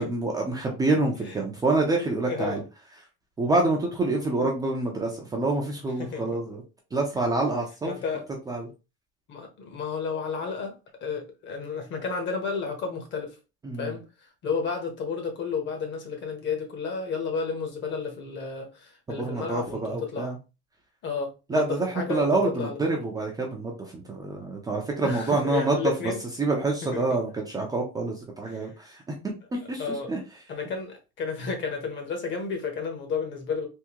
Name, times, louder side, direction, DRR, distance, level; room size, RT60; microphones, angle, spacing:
voice 1, 0.0-2.6 3.4-6.6 6.9-7.9 8.5-8.7 13.6-13.9 19.1-20.4 21.5-25.9 26.4-30.2, right 2 dB, 15° right, 0.5 m, -27 dB
voice 2, 2.3-2.6 6.0-6.2 7.8-8.3 9.3-13.4 13.8-14.0 14.4-20.3 21.0-22.8 25.0-26.2 26.8-27.2 28.4-28.7 29.8-30.1 30.5-33.7, left 5 dB, 40° left, 1.1 m, -32 dB
3.6 x 2.7 x 2.9 m
cardioid pair, 160°, 29 cm